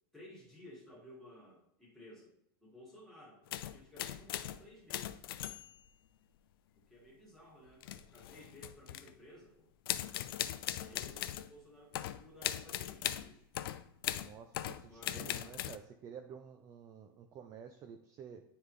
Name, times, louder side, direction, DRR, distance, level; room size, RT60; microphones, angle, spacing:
voice 1, 0.1-2.3 2.6-5.2 6.8-9.7 10.7-13.5 14.8-15.7, left 1 dB, ahead, -6 dB, 2.0 m, -56 dB
sound 1, 3.5-4.6 4.9-5.9 7.8-9.1 9.9-11.5 11.9-15.8, left 12 dB, 75° left, 0.4 m, -39 dB
voice 2, 14.2-18.4, right 7 dB, 25° right, 6 dB, 0.4 m, -51 dB
9.5 x 3.5 x 3.2 m, 0.76 s
supercardioid pair, 150°, 12 cm